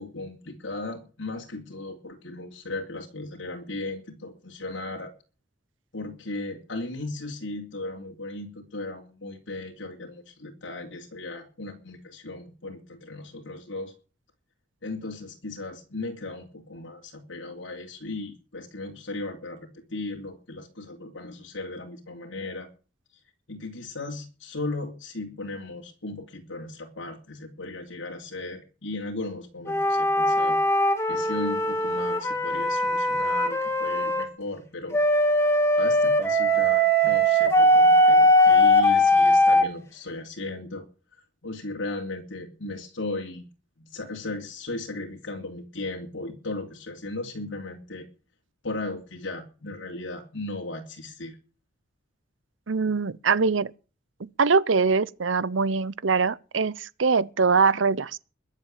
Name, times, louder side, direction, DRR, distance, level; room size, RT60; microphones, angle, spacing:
voice 1, 0.0-5.1 5.9-13.9 14.8-22.7 23.5-30.6 31.1-35.0 35.8-40.8 41.4-43.4 43.8-48.1 48.6-51.4, left 2 dB, 80° left, 2.8 m, -36 dB
sound 1, 29.7-34.3 34.9-39.7, equal, 15° left, 2.1 m, -20 dB
voice 2, 52.7-53.7 54.2-58.2, right 4 dB, 85° right, 0.7 m, -23 dB
21.5 x 7.5 x 7.4 m
head